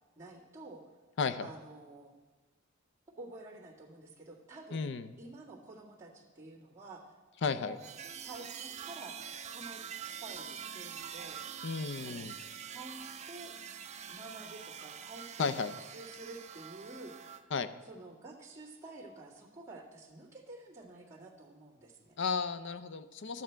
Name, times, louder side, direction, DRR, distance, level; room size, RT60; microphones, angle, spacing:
voice 1, 0.2-0.8 1.4-2.1 3.2-4.9 5.2-7.1 7.4-7.8 8.2-9.8 10.1-11.4 12.0-12.3 12.7-13.0 13.3-13.5 14.1-17.1 17.8-22.2, right 2 dB, 15° right, -8 dB, 1.7 m, -49 dB
voice 2, 1.2-1.5 4.7-5.1 7.4-7.8 11.6-12.3 15.4-15.7 17.5-17.7 22.2-23.4, left 5 dB, 60° left, 12 dB, 0.5 m, -33 dB
sound 1, 7.8-17.4, right 8 dB, 35° right, 0.4 m, -45 dB
12.0 x 7.4 x 4.4 m, 1.3 s
head